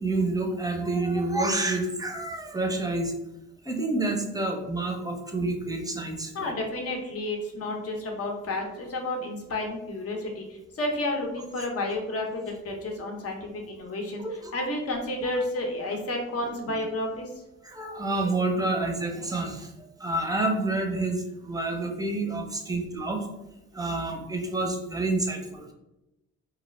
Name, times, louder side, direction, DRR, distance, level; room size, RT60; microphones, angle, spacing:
voice 1, 0.0-3.1 3.6-6.5 14.2-14.5 15.2-15.4 17.6-23.3 23.7-25.7, right 2 dB, 10° right, 2 dB, 0.5 m, -28 dB
voice 2, 6.3-17.3, left 1 dB, 50° left, 1 dB, 0.7 m, -31 dB
2.3 x 2.0 x 3.1 m, 0.94 s
supercardioid pair, 60°, 29 cm